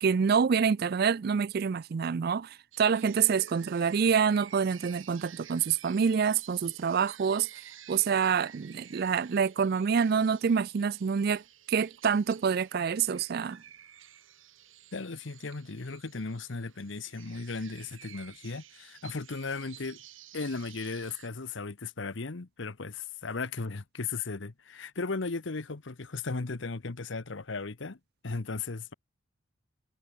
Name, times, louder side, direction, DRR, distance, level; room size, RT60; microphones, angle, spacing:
voice 1, 0.0-7.5 7.9-11.4 11.7-13.6, right 6 dB, 50° right, 0.4 m, -27 dB
sound 1, 2.7-21.3, right 11 dB, 75° right, 3.7 m, -53 dB
voice 2, 14.9-20.0 20.3-28.0 28.2-28.9, left 4 dB, 65° left, 0.9 m, -36 dB
head